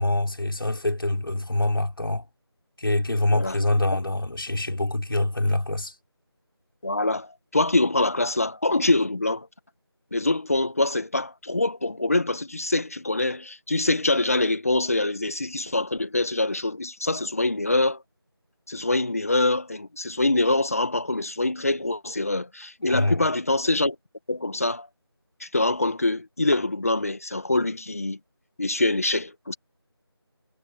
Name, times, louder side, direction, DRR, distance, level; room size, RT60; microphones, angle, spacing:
voice 1, 0.0-2.3 2.8-5.9 22.8-23.3, left 1 dB, 55° left, 6.2 m, -25 dB
voice 2, 6.8-9.5 10.1-18.0 18.7-23.9 24.3-24.9 25.4-28.2 28.6-29.6, left 2 dB, 35° left, 1.7 m, -24 dB
figure-of-eight pair, 175°, 14 cm